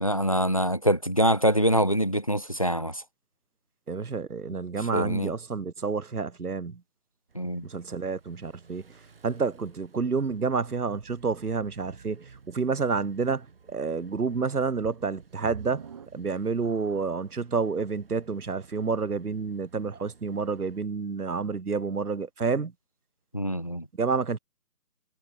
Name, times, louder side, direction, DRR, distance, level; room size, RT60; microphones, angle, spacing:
voice 1, 0.0-3.0 4.9-5.3 7.3-7.7 23.3-23.9, equal, 20° left, 0.9 m, -24 dB
voice 2, 3.9-6.8 7.6-8.8 9.2-15.9 16.1-22.7 24.0-24.4, right 5 dB, 70° right, 1.2 m, -29 dB
sound 1, 7.3-20.8, right 5 dB, 35° right, 7.6 m, -56 dB
sound 2, 14.8-17.3 17.9-18.0 18.6-18.7, right 7 dB, 20° right, 3.2 m, -45 dB
figure-of-eight pair, 160°, 47 cm